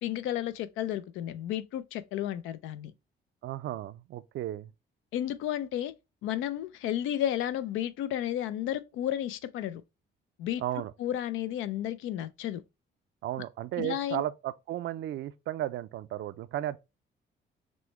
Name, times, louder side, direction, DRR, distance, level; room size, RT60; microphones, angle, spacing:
voice 1, 0.0-2.9 5.1-5.9 6.2-9.8 10.4-10.6 11.0-12.6 13.8-14.2, left 11 dB, 90° left, 0.4 m, -32 dB
voice 2, 3.4-4.7 10.6-10.9 13.2-16.9, right 13 dB, 70° right, 0.4 m, -34 dB
6.1 x 2.1 x 3.1 m
cardioid pair, 90°, 20 cm